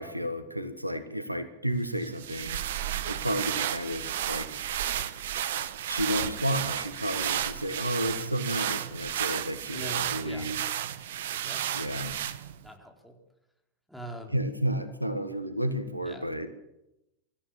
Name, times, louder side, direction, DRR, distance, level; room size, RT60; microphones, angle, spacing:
voice 1, 0.0-2.6 3.1-4.8 5.9-10.6 11.7-12.2 14.3-16.5, equal, 90° right, 10 dB, 1.5 m, -32 dB
sound 1, 2.0-12.7, right 10 dB, 55° right, 1.2 m, -32 dB
voice 2, 9.7-10.5 11.3-11.8 12.6-13.1 13.9-14.3 16.0-16.3, right 1 dB, ahead, 2 dB, 4.0 m, -43 dB
25.0 x 14.0 x 7.5 m, 0.90 s
figure-of-eight pair, 90°, 0 cm